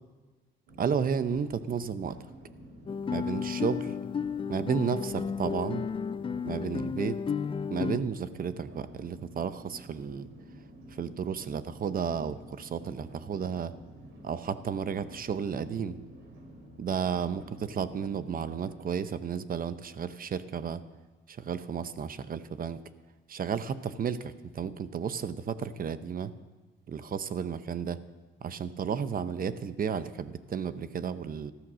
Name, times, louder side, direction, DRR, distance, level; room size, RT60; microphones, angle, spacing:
sound 1, 0.7-18.8, right 1 dB, 90° right, 2.9 m, -50 dB
voice 1, 0.8-2.2 3.1-3.9 4.5-5.9 6.4-7.2 7.7-10.3 11.0-13.7 14.2-16.0 16.8-20.8 21.3-22.8 23.3-26.3 26.9-28.0 28.4-31.5, right 7 dB, 45° right, 13 dB, 0.9 m, -32 dB
Guitar, 2.9-8.0, left 6 dB, 25° left, 0.4 m, -33 dB
13.5 x 13.0 x 6.3 m, 1.3 s
cardioid pair, 90°, 20 cm